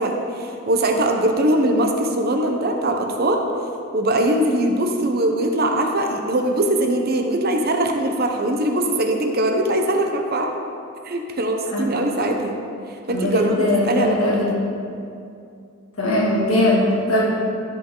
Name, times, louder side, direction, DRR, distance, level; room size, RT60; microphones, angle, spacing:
voice 1, 0.0-3.4 3.9-10.5 11.0-12.6 13.1-14.5, right 1 dB, 50° right, 3 dB, 0.9 m, -21 dB
voice 2, 13.1-14.5 16.0-17.2, left 1 dB, 90° left, -6 dB, 2.3 m, -20 dB
14.0 x 5.6 x 3.9 m, 2.5 s
head